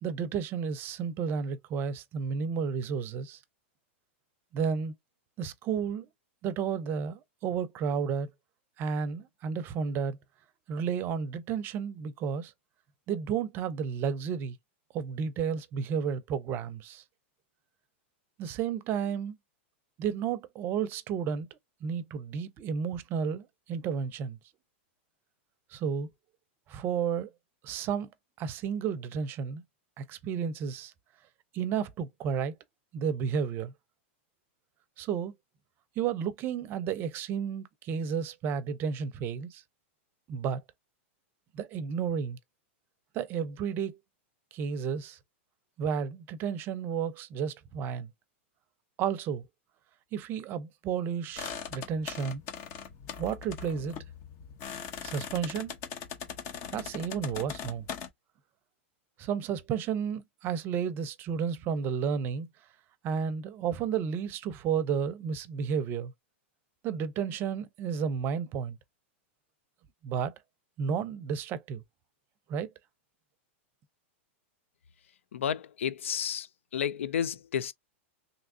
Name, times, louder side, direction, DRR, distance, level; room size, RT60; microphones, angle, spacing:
voice 1, 0.0-3.4 4.5-4.9 5.4-6.1 6.4-8.3 8.8-10.2 10.7-12.5 13.1-14.6 14.9-17.0 18.4-19.4 20.0-21.5 21.8-24.4 25.7-26.1 26.7-27.3 27.6-28.1 28.4-29.6 30.0-30.9 31.5-32.5 32.9-33.7 35.0-35.3 36.0-39.6 40.3-40.6 41.5-42.4 43.1-44.0 44.5-45.2 45.8-48.1 49.0-49.5 50.1-52.4 53.2-54.0 55.0-55.7 56.7-57.9 59.2-62.5 63.0-66.1 66.8-68.8 70.0-70.3 70.8-71.8 72.5-72.7, right 7 dB, 30° right, 0.6 m, -32 dB
sound 1, 51.4-58.1, left 7 dB, 40° left, 0.8 m, -40 dB
voice 2, 75.3-76.5 76.7-77.7, left 8 dB, 90° left, 0.4 m, -31 dB
3.4 x 2.8 x 2.6 m
hypercardioid pair, 135°, 7 cm